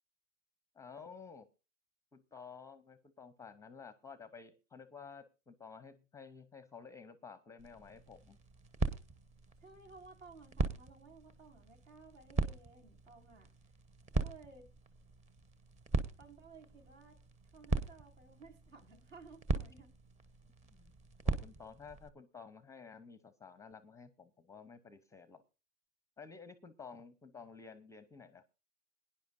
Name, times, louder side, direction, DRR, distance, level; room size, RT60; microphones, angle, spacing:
voice 1, 0.7-1.4 2.1-8.4 20.7-20.9 21.2-25.4 26.2-28.4, left 5 dB, 10° left, 13 dB, 0.6 m, -53 dB
sound 1, 7.6-22.1, right 3 dB, 15° right, 1.0 m, -40 dB
voice 2, 9.6-13.5 14.1-14.7 16.2-17.2 17.5-19.9, right 4 dB, 70° right, 2 dB, 5.2 m, -56 dB
21.5 x 10.0 x 2.6 m, 0.31 s
hypercardioid pair, 110°, 39 cm